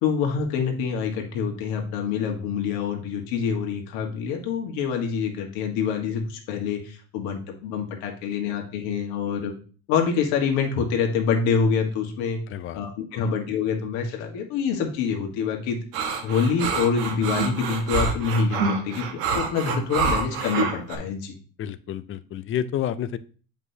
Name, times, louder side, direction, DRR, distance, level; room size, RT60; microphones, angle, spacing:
voice 1, 0.0-9.5 9.9-12.4 12.7-15.8 16.2-19.1 19.3-21.3, left 6 dB, 75° left, 2 dB, 1.6 m, -26 dB
voice 2, 12.5-12.8 13.1-13.2 21.6-23.2, left 10 dB, 35° left, 14 dB, 0.5 m, -30 dB
sound 1, 15.9-21.0, right 4 dB, 85° right, 1.4 m, -26 dB
7.7 x 5.1 x 2.8 m, 0.39 s
supercardioid pair, 110°, 38 cm